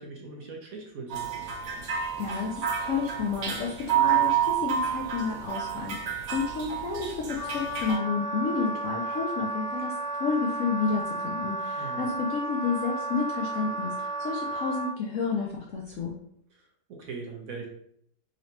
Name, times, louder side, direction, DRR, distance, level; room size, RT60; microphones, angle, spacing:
voice 1, 0.0-1.3 11.7-12.1 16.5-17.7, right 4 dB, 60° right, 0 dB, 1.1 m, -41 dB
sound 1, 1.1-8.0, right 9 dB, 85° right, 1.5 m, -29 dB
voice 2, 2.2-9.9 10.2-16.1, left 5 dB, 65° left, -2 dB, 0.8 m, -31 dB
Wind instrument woodwind instrument, 7.3-14.9, right 2 dB, 25° left, 1.5 m, -33 dB
3.8 x 3.2 x 2.8 m, 0.68 s
omnidirectional pair, 1.8 m